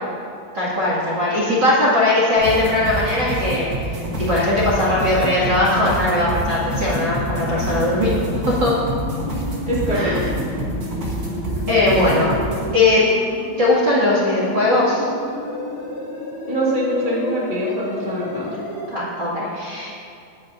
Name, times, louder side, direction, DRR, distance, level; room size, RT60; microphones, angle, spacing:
voice 1, 0.5-3.7 4.2-8.3 8.6-8.8 9.9-10.3 11.7-12.3 12.7-13.1 13.6-15.0 18.9-19.9, left 2 dB, 40° right, -7 dB, 1.8 m, -19 dB
sound 1, 2.4-12.7, right 1 dB, 80° right, 0.8 m, -28 dB
sound 2, 4.0-18.9, left 2 dB, 50° left, 1.5 m, -31 dB
voice 2, 9.6-10.1 16.5-18.5, equal, 80° left, -6 dB, 0.5 m, -23 dB
22.5 x 9.2 x 2.7 m, 2.6 s
omnidirectional pair, 5.4 m